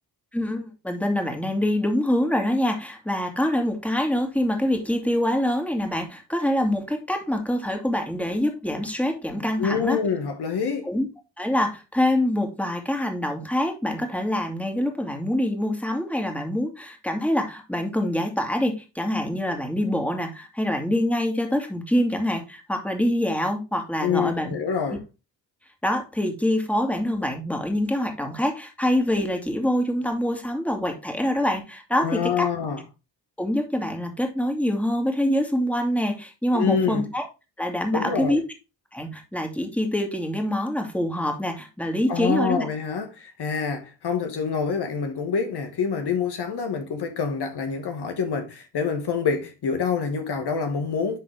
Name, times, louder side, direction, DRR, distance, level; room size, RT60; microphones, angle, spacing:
voice 1, 0.3-10.0 10.8-11.1 11.4-24.5 25.8-32.5 33.4-37.3 37.6-38.4 38.9-42.7, left 1 dB, 5° left, 2.2 m, -25 dB
voice 2, 9.6-10.9 24.0-25.0 32.0-32.8 36.5-37.0 37.9-38.4 42.1-51.2, left 6 dB, 65° left, 1.6 m, -26 dB
10.5 x 3.9 x 3.4 m
supercardioid pair, 55°, 42 cm